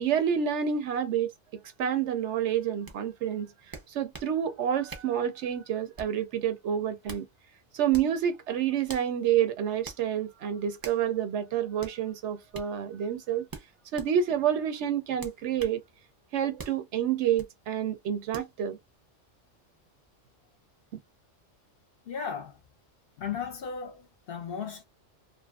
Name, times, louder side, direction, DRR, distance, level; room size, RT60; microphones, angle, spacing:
voice 1, 0.0-1.3 1.8-7.3 7.7-13.4 13.9-15.8 16.3-18.8, right 9 dB, 70° right, 0.8 m, -28 dB
sound 1, 2.9-3.0 3.7-4.3 4.9-5.2 5.9-6.2 6.8-7.3 7.9-8.2 8.9-9.1 9.8-10.0 10.8-11.0 11.8-12.0 12.5-12.7 13.5-14.1 15.2-15.8 16.6-16.8 17.4-17.5 18.3-18.5, right 3 dB, 35° right, 0.3 m, -43 dB
voice 2, 22.1-22.6 23.2-24.8, left 6 dB, 55° left, 0.7 m, -36 dB
2.6 x 2.5 x 2.3 m
omnidirectional pair, 1.3 m